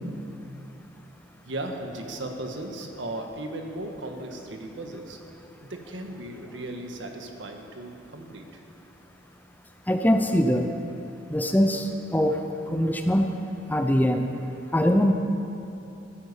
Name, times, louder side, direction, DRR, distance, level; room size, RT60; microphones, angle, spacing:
voice 1, 1.4-5.2 5.6-8.6, right 1 dB, 75° right, 4 dB, 1.5 m, -36 dB
voice 2, 9.9-10.7 11.3-13.3 13.7-14.3 14.7-15.1, equal, 10° left, 5 dB, 0.6 m, -23 dB
14.5 x 9.6 x 8.4 m, 2.9 s
head